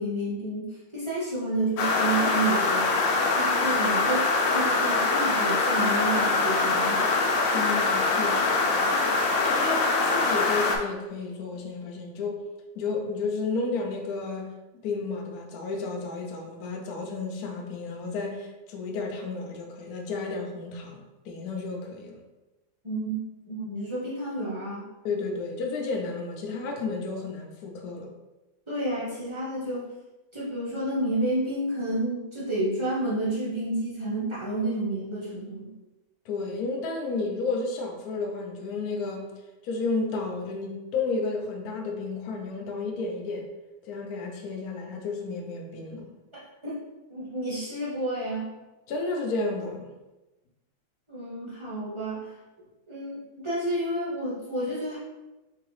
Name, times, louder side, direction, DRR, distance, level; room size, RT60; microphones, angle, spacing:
voice 1, 0.0-2.9 3.3-7.1 22.8-23.2 23.5-24.9 28.7-29.9 30.3-35.7 46.3-46.8 47.1-48.5 51.1-52.3 52.9-55.0, right 1 dB, 35° right, -7 dB, 0.5 m, -30 dB
sound 1, 1.8-10.8, left 3 dB, 85° left, 1.4 m, -23 dB
voice 2, 7.5-12.4 12.8-14.5 14.8-22.2 25.0-28.1 36.3-39.2 39.6-43.4 43.8-46.1 48.9-49.9, left 3 dB, 65° left, 1 dB, 0.9 m, -32 dB
4.5 x 2.9 x 3.1 m, 1.1 s
omnidirectional pair, 2.2 m